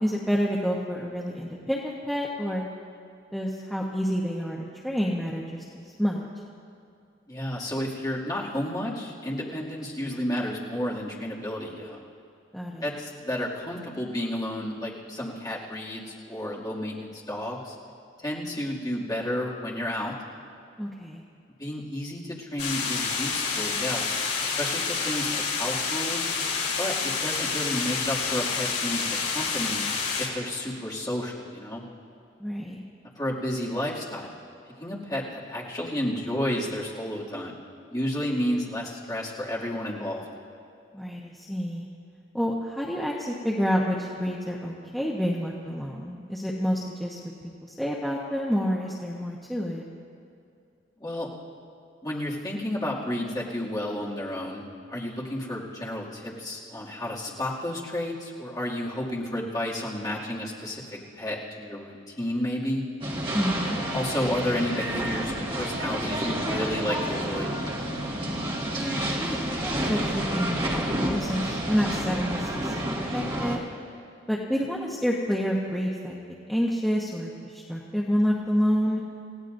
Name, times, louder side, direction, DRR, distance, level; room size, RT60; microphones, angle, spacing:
voice 1, 0.0-2.7 3.3-6.3 12.5-12.9 20.8-21.2 32.4-32.8 40.9-41.9 42.3-47.2 47.6-49.8 63.3-63.8 68.7-72.8 73.1-73.6 74.3-76.2 76.5-79.0, equal, ahead, -4 dB, 1.0 m, -28 dB
voice 2, 7.3-12.0 12.8-17.8 18.2-20.1 21.6-24.0 24.4-26.3 26.8-29.8 30.2-31.8 33.2-34.3 34.7-37.6 37.9-40.2 51.0-51.3 52.0-62.8 63.6-67.5, left 1 dB, 20° left, -6 dB, 2.4 m, -31 dB
sound 1, 22.6-30.3, left 5 dB, 60° left, 3.4 m, -28 dB
sound 2, 63.0-73.6, right 1 dB, 25° right, 1.9 m, -30 dB
29.5 x 16.5 x 2.6 m, 2.5 s
head